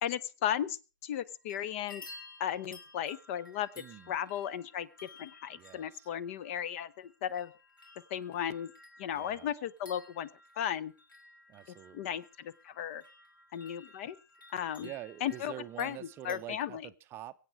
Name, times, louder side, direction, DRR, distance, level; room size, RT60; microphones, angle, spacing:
voice 1, 0.0-0.8 1.0-2.0 2.4-7.5 8.1-8.7 9.0-10.3 10.6-10.9 11.9-13.0 13.5-14.2 14.5-14.9 15.2-16.0 16.2-16.8, left 10 dB, 40° left, 21 dB, 0.7 m, -35 dB
sound 1, 1.2-1.6 1.9-16.4, left 3 dB, 85° left, 3.2 m, -55 dB
voice 2, 3.8-4.1 5.5-6.1 9.1-9.5 11.5-12.1 14.8-17.3, right 13 dB, 20° right, 11 dB, 0.6 m, -46 dB
23.5 x 8.2 x 4.7 m, 0.33 s
hypercardioid pair, 125°, 11 cm